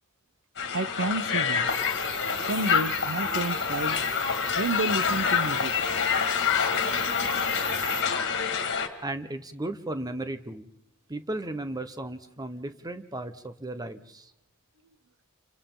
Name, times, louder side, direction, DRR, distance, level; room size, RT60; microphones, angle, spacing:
Crowd, 0.6-8.9, left 6 dB, 55° left, 2.1 m, -27 dB
voice 1, 0.7-1.7 2.5-4.0 4.5-5.7, right 2 dB, 60° right, 0.9 m, -30 dB
sound 1, 1.7-8.0, right 5 dB, 85° right, 3.8 m, -40 dB
voice 2, 9.0-10.7 11.1-14.3, right 1 dB, 15° right, 1.1 m, -35 dB
29.5 x 25.5 x 3.9 m
head